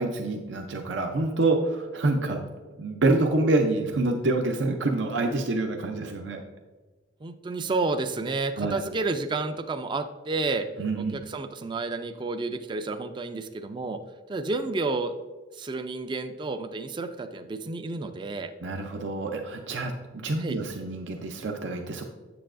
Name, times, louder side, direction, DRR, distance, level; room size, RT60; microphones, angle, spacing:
voice 1, 0.0-2.4 2.8-6.4 8.6-8.8 10.8-11.2 18.6-19.9 20.2-22.1, right 2 dB, 80° right, 3 dB, 0.6 m, -27 dB
voice 2, 7.2-10.7 11.0-14.0 14.3-15.1 15.5-18.5 20.4-20.6, right 3 dB, 25° right, 9 dB, 0.3 m, -30 dB
8.0 x 6.8 x 2.5 m, 1.3 s
head